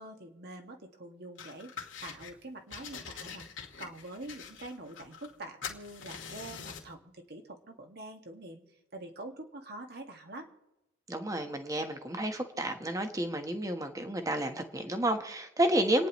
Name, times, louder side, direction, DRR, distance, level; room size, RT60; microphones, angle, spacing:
voice 1, 0.0-1.7 2.0-3.4 3.8-8.6 8.9-10.5, right 2 dB, 55° right, 3 dB, 1.8 m, -45 dB
sound 1, 1.4-2.3 2.7-5.4 5.6-6.9, left 6 dB, 80° left, 2.2 m, -44 dB
voice 2, 11.1-16.1, right 1 dB, 20° right, 6 dB, 1.2 m, -31 dB
29.5 x 10.0 x 3.1 m, 0.94 s
head